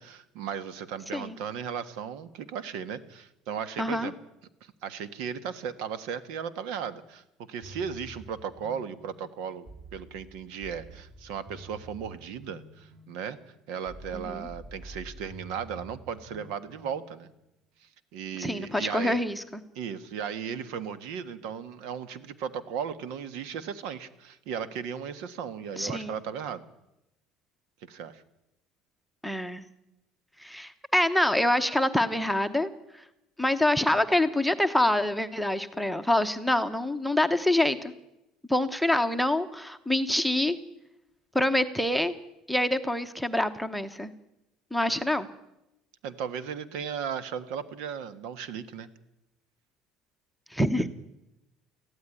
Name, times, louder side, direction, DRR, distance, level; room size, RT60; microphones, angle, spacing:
voice 1, 0.0-4.1 4.6-13.4 13.7-17.3 17.8-19.2 19.7-26.6 27.8-28.2 46.0-48.9 50.8-50.9, right 7 dB, 75° right, 14 dB, 1.5 m, -36 dB
voice 2, 3.8-4.1 14.1-14.5 18.4-19.4 25.8-26.2 29.2-29.6 30.4-33.0 33.4-37.9 38.5-40.6 41.3-42.1 42.5-44.1 44.7-45.3 50.5-50.9, left 1 dB, ahead, 13 dB, 0.9 m, -26 dB
sound 1, 7.6-17.4, right 1 dB, 35° right, 3.2 m, -48 dB
19.0 x 15.0 x 9.8 m, 0.90 s
cardioid pair, 160°, 0 cm